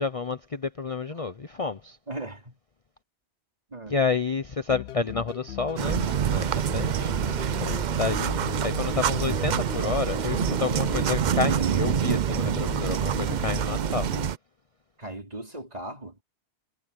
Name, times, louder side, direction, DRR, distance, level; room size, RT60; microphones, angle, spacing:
voice 1, 0.0-2.0 3.9-7.1 7.6-14.1, left 4 dB, 35° left, 0.8 m, -30 dB
voice 2, 2.1-2.6 3.7-3.9 15.0-16.2, right 1 dB, 35° right, 4.2 m, -38 dB
sound 1, 4.7-14.3, left 11 dB, 75° left, 0.8 m, -38 dB
sound 2, 5.8-14.4, right 9 dB, 55° right, 0.6 m, -26 dB
omnidirectional pair, 1.1 m